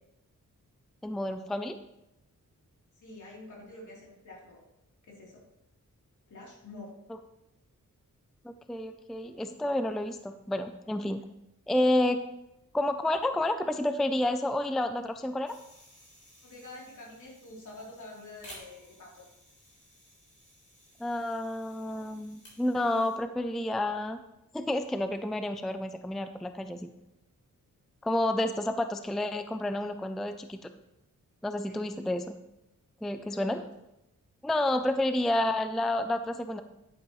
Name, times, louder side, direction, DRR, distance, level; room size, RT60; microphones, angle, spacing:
voice 1, 1.0-1.8 8.4-11.2 11.7-12.2 12.7-15.6 21.0-24.2 24.5-26.9 28.0-30.6 31.4-32.4 33.0-33.6 34.4-36.6, left 1 dB, ahead, 9 dB, 0.3 m, -30 dB
voice 2, 3.0-4.6 5.1-5.5 6.3-7.0 16.4-19.2 31.7-32.0 33.2-33.7, left 2 dB, 65° left, -3 dB, 3.3 m, -47 dB
sound 1, 15.5-23.2, equal, 50° left, 3.7 m, -56 dB
10.5 x 9.9 x 3.1 m, 0.88 s
wide cardioid pair, 180°, 32 cm